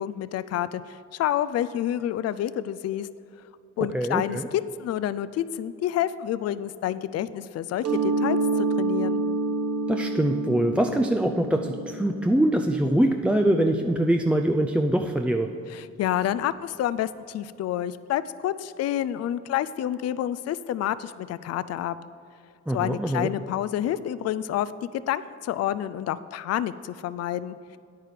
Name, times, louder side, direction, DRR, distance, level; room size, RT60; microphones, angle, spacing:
voice 1, 0.0-3.1 3.8-9.2 15.7-22.0 22.7-24.7 25.1-27.6, left 11 dB, 55° left, 15 dB, 0.4 m, -28 dB
voice 2, 3.8-4.5 9.9-15.5 22.7-23.3, right 1 dB, 5° right, 4 dB, 0.4 m, -23 dB
Mallet percussion, 7.8-13.4, right 3 dB, 55° right, 1.3 m, -28 dB
9.2 x 9.1 x 5.0 m, 2.5 s
cardioid pair, 90°, 30 cm